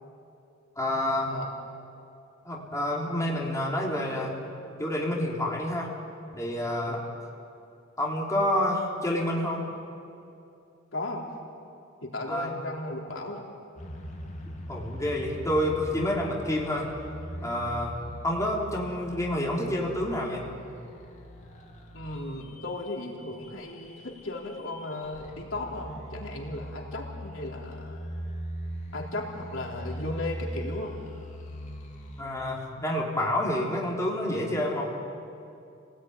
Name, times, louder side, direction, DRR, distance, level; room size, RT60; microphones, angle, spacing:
voice 1, 0.8-1.3 2.4-4.3 4.8-5.9 6.3-7.0 8.0-9.6 12.3-12.5 14.7-16.9 17.4-18.0 18.2-20.4 32.2-34.9, left 1 dB, 15° left, -3 dB, 3.9 m, -28 dB
voice 2, 10.9-11.3 12.0-13.5 21.9-28.0 28.9-31.0, left 2 dB, 80° left, 0 dB, 3.6 m, -36 dB
sound 1, 13.8-32.2, equal, 40° left, 2.8 m, -41 dB
29.5 x 19.0 x 9.7 m, 2.6 s
head